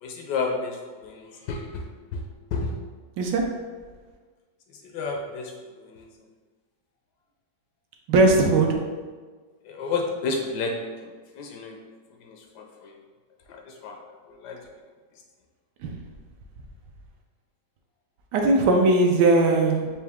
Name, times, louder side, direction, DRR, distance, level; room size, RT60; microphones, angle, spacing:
voice 1, 0.0-1.8 2.1-2.2 2.5-2.7 4.9-5.5 5.8-6.1 9.7-10.7 11.0-11.8 12.2-12.9 13.5-14.0 14.4-14.6, left 4 dB, 75° left, 2 dB, 1.1 m, -31 dB
voice 2, 8.1-8.8 15.8-16.0 18.3-19.9, right 2 dB, 75° right, 2 dB, 1.2 m, -19 dB
4.7 x 2.7 x 3.4 m, 1.4 s
omnidirectional pair, 1.9 m